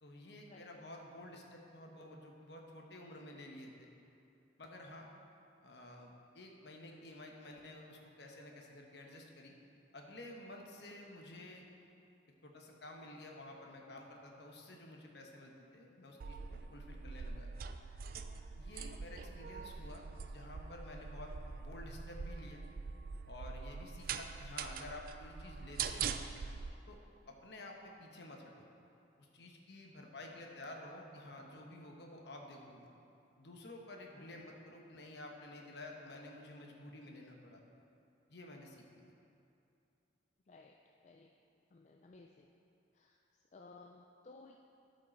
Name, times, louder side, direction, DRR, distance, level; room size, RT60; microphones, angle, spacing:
voice 1, 0.0-3.9 4.6-5.1 5.6-9.5 9.9-11.7 12.4-17.5 18.1-18.3 18.6-22.6 23.3-26.2 26.9-27.0 27.3-28.7 29.2-32.9 33.4-37.6 38.3-38.8, left 1 dB, 60° left, 1 dB, 1.1 m, -51 dB
sound 1, 16.2-26.7, right 6 dB, 50° right, 0.3 m, -43 dB
voice 2, 40.5-40.8 41.0-41.3 41.7-42.5 42.9-44.6, left 3 dB, 35° left, 1 dB, 0.3 m, -58 dB
12.5 x 5.2 x 4.4 m, 2.6 s
head